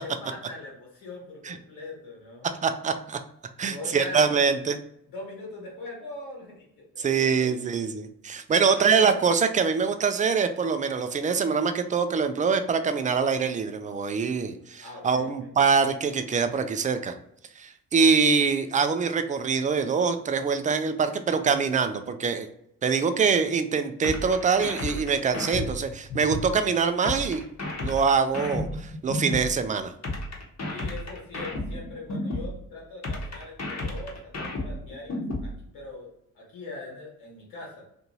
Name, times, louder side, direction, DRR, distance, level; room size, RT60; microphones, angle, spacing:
voice 1, 0.0-2.5 3.6-4.4 5.1-7.7 8.5-9.0 14.8-15.3 30.7-36.1 36.3-37.8, left 2 dB, 70° left, -2 dB, 1.4 m, -41 dB
voice 2, 2.6-3.2 3.6-4.8 7.0-17.1 17.6-22.5 22.8-27.4 27.8-29.9, right 5 dB, 20° right, 9 dB, 0.3 m, -24 dB
sound 1, 24.0-26.5 27.0-29.5 30.0-32.5 33.0-35.5, left 1 dB, 40° left, 1.0 m, -32 dB
2.6 x 2.5 x 2.9 m, 0.75 s
hypercardioid pair, 40°, 42 cm